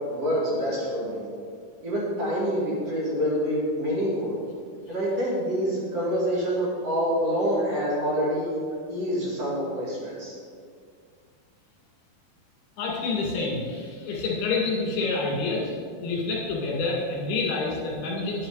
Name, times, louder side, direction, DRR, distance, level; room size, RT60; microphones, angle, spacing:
voice 1, 0.1-1.3 1.8-4.4 4.9-8.6 8.9-10.3, equal, 45° right, -6 dB, 3.0 m, -26 dB
voice 2, 12.8-15.7 16.0-18.5, left 3 dB, 80° left, -3 dB, 4.1 m, -28 dB
10.5 x 9.1 x 4.1 m, 2.1 s
omnidirectional pair, 4.4 m